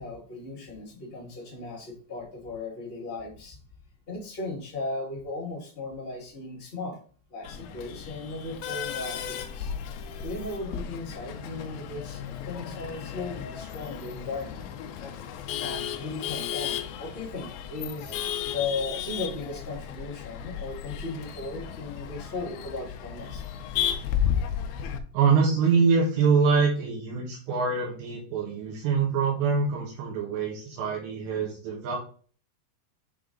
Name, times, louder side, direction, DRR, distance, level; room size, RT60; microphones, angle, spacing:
voice 1, 0.0-3.6 4.1-7.0 7.3-9.7 10.2-12.2 12.5-14.7 15.6-23.4, left 3 dB, 35° left, -3 dB, 0.9 m, -36 dB
Male speech man speaking / Laughter / Chatter, 7.4-25.0, left 9 dB, 80° left, 2.2 m, -34 dB
voice 2, 25.1-32.0, right 5 dB, 80° right, -3 dB, 3.5 m, -24 dB
7.7 x 3.8 x 3.8 m, 0.42 s
omnidirectional pair, 5.0 m